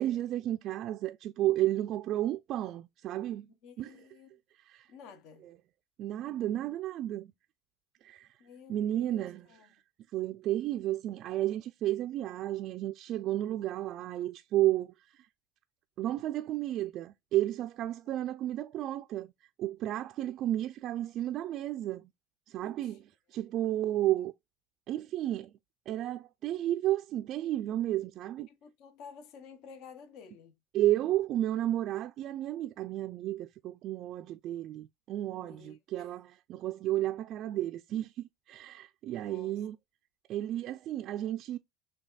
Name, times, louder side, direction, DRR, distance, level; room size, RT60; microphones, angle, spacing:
voice 1, 0.0-3.5 3.8-4.0 4.5-4.9 5.4-5.5 6.0-7.3 8.0-8.4 8.7-9.8 10.1-15.3 16.0-19.3 19.6-22.1 22.5-24.3 24.9-25.5 25.9-28.5 30.7-39.8 40.3-41.6, right 13 dB, 55° right, 0.3 m, -32 dB
voice 2, 3.6-4.4 4.9-5.4 8.4-9.7 22.6-23.0 28.5-30.5 35.3-36.1 39.2-39.6, left 6 dB, 65° left, 0.7 m, -52 dB
6.2 x 2.3 x 2.3 m
hypercardioid pair, 85°, 0 cm